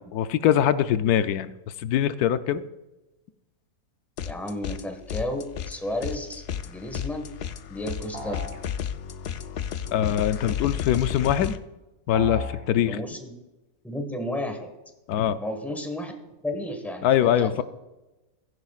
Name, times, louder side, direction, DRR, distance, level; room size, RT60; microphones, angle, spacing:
voice 1, 0.1-1.5 1.8-2.6 9.9-11.6 12.1-13.0 15.1-15.4 17.0-17.6, left 10 dB, 90° left, 12 dB, 1.1 m, -23 dB
sound 1, 4.2-4.8 5.1-11.6, left 8 dB, 65° left, 0.6 m, -33 dB
voice 2, 4.2-7.3 7.7-8.4 12.9-13.3 13.8-14.7 15.4-16.1 16.4-17.6, left 1 dB, ahead, 4 dB, 1.4 m, -32 dB
sound 2, 8.1-8.6 12.1-12.6, left 2 dB, 85° right, 2.4 m, -33 dB
15.5 x 14.5 x 2.4 m, 1.0 s
omnidirectional pair, 1.6 m